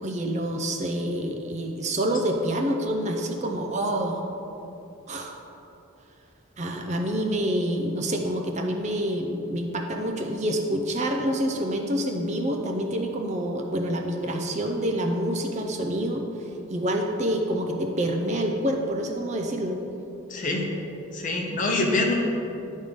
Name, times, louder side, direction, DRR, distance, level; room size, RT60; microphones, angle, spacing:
voice 1, 0.0-4.2 5.1-5.4 6.6-16.2 16.7-19.8, right 1 dB, 30° right, 2 dB, 0.5 m, -27 dB
voice 2, 20.3-20.7 21.1-22.1, left 2 dB, 35° left, 0 dB, 0.8 m, -25 dB
10.0 x 3.6 x 5.2 m, 2.9 s
head